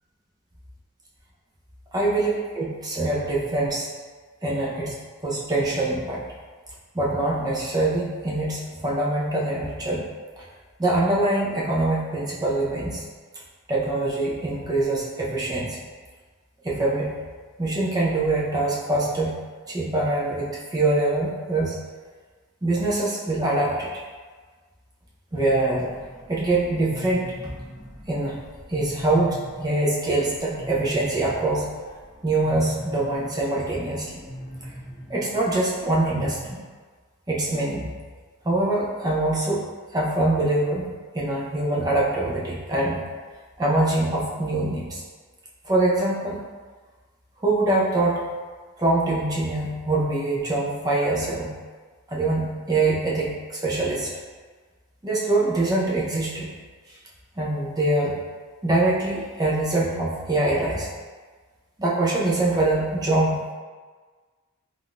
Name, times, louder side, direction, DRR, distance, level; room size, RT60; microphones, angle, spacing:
voice 1, 1.9-3.9 4.4-5.0 5.2-6.2 6.9-10.0 10.4-10.5 10.8-13.0 13.7-15.8 16.6-17.1 17.6-19.4 19.7-21.8 22.6-23.9 25.3-25.9 26.3-27.3 28.1-28.4 28.7-31.7 32.2-34.2 35.1-36.6 37.3-37.9 38.4-40.9 41.1-43.0 43.6-45.0 45.6-46.4 47.4-48.2 48.8-51.6 52.1-54.1 55.0-56.5 57.4-58.2 58.6-60.9 61.8-63.5, right 2 dB, 15° right, -5 dB, 0.5 m, -24 dB
sound 1, 25.3-36.6, equal, 35° left, 1.1 m, -42 dB
3.5 x 2.5 x 2.3 m, 1.4 s
head